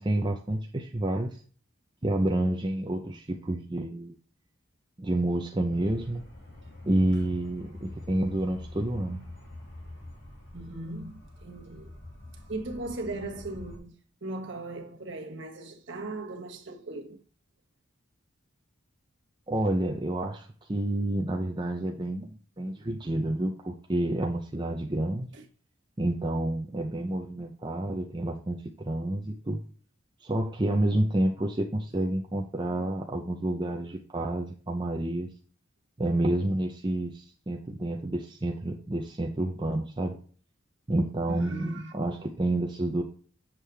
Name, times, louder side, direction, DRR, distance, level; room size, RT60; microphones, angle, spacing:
voice 1, 0.0-1.4 2.0-4.1 5.0-6.2 6.8-9.2 19.5-25.3 26.0-29.6 30.2-35.3 36.0-40.2 40.9-43.0, right 1 dB, 20° right, 0.6 m, -29 dB
sound 1, 5.7-13.8, left 1 dB, 50° left, 3.0 m, -45 dB
voice 2, 10.5-11.9 12.5-13.9 14.2-17.2 25.3-25.4 41.3-41.9, right 2 dB, 60° right, 1.3 m, -38 dB
7.4 x 6.4 x 3.4 m
head